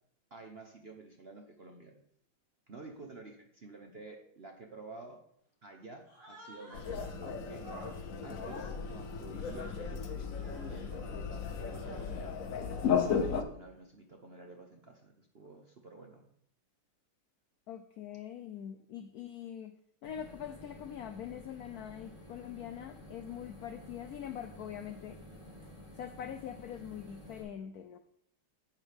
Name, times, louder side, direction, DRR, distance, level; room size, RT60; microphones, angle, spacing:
voice 1, 0.3-2.0 2.7-5.2 5.6-7.7 8.2-12.4 13.0-16.3, right 3 dB, 45° right, 2 dB, 0.8 m, -51 dB
Human voice, 6.0-7.2 7.6-9.9 10.3-10.9 11.5-12.3, equal, 75° right, 5.8 m, -52 dB
sound 1, 6.7-13.4, left 6 dB, 55° left, 1.0 m, -35 dB
voice 2, 17.7-19.7 20.0-25.2 26.0-28.0, left 9 dB, 85° left, 8 dB, 0.8 m, -43 dB
sound 2, 20.0-27.4, left 1 dB, 20° left, 3.1 m, -52 dB
11.0 x 8.3 x 3.5 m, 0.68 s
omnidirectional pair, 2.3 m